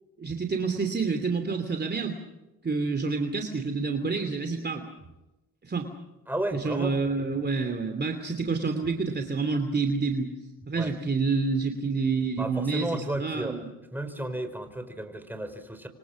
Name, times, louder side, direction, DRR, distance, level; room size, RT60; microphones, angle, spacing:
voice 1, 0.2-2.2 2.6-4.9 5.6-5.9 6.5-10.3 10.7-13.7, right 4 dB, 25° right, 6 dB, 2.8 m, -28 dB
voice 2, 6.3-7.0 10.7-10.9 12.4-13.6 13.9-15.9, right 1 dB, 5° right, 7 dB, 5.1 m, -33 dB
28.0 x 25.5 x 6.4 m, 1.0 s
cardioid pair, 85°, 37 cm